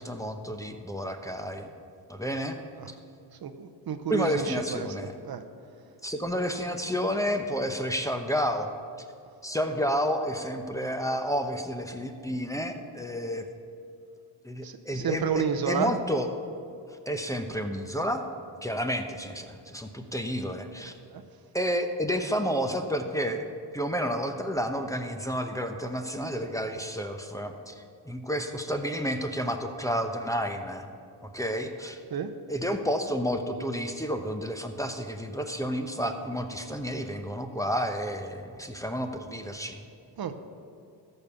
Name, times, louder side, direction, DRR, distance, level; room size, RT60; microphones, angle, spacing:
voice 1, 0.0-1.7 2.1-2.6 4.1-5.1 6.0-8.7 9.4-13.5 14.4-16.3 17.1-18.2 18.6-20.9 21.5-30.9 31.2-32.0 32.5-39.8, equal, 5° left, 5 dB, 0.8 m, -30 dB
voice 2, 3.4-5.4 14.6-16.0 21.1-21.2 32.1-32.3 40.2-40.3, right 7 dB, 55° right, 8 dB, 0.8 m, -31 dB
13.5 x 5.4 x 6.9 m, 2.6 s
cardioid pair, 80°, 43 cm